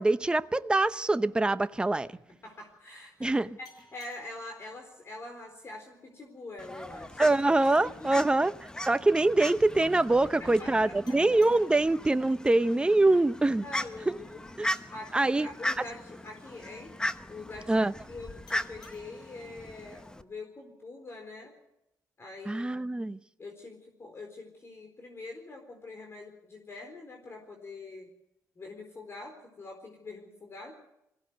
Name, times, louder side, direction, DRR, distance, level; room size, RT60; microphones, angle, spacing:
voice 1, 0.0-2.1 3.2-3.6 7.2-8.5 8.8-13.7 14.1-14.2 14.6-14.7 15.1-15.5 17.7-17.9 22.5-23.2, right 2 dB, 15° right, 0.7 m, -24 dB
voice 2, 2.4-3.7 3.9-7.3 7.7-8.2 10.4-11.2 13.6-14.4 14.9-16.9 17.3-21.5 22.2-22.7 23.4-28.1 28.6-30.7, left 2 dB, 40° left, 4.1 m, -44 dB
sound 1, 3.6-6.9 11.1-14.3 18.5-21.4, left 3 dB, 70° left, 7.5 m, -62 dB
Fowl, 6.6-20.2, left 1 dB, 10° left, 1.0 m, -39 dB
22.0 x 16.5 x 7.9 m
cardioid pair, 80°, 7 cm